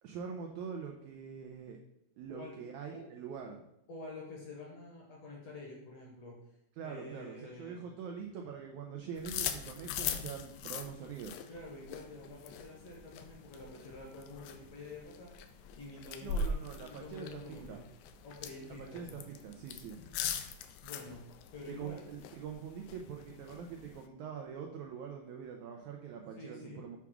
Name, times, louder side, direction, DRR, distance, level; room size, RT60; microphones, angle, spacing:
voice 1, 0.0-1.8 2.2-3.6 6.8-11.3 16.2-17.8 18.7-20.0 21.7-27.0, right 7 dB, 90° right, 2 dB, 1.7 m, -44 dB
voice 2, 3.9-6.4 6.8-7.8 11.5-15.3 15.7-17.8 18.2-19.2 20.8-21.2 21.5-22.0 26.3-26.8, left 2 dB, 60° left, -2 dB, 1.8 m, -48 dB
sound 1, 9.2-24.1, left 5 dB, 85° left, 2.3 m, -42 dB
7.2 x 3.5 x 6.0 m, 0.81 s
omnidirectional pair, 4.2 m